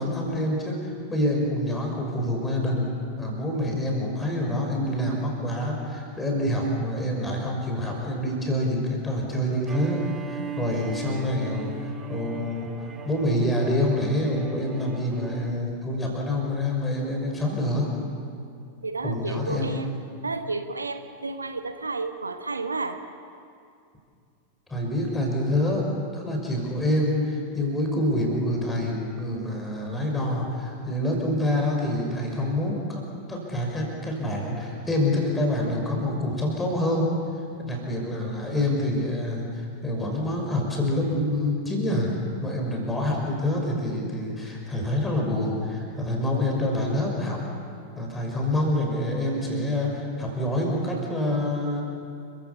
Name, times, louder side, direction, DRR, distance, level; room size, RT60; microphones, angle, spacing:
voice 1, 0.0-2.9 3.2-12.7 13.0-17.9 19.0-19.8 24.7-25.9 26.1-33.0 33.3-37.1 37.6-42.1 42.4-47.4 48.0-51.8, left 1 dB, 10° left, 0 dB, 6.0 m, -26 dB
Bowed string instrument, 9.6-15.7, right 7 dB, 20° right, 2.0 m, -38 dB
voice 2, 18.8-23.0, right 3 dB, 80° right, 9 dB, 1.0 m, -32 dB
29.5 x 15.5 x 7.1 m, 2.4 s
figure-of-eight pair, 90°, 0 cm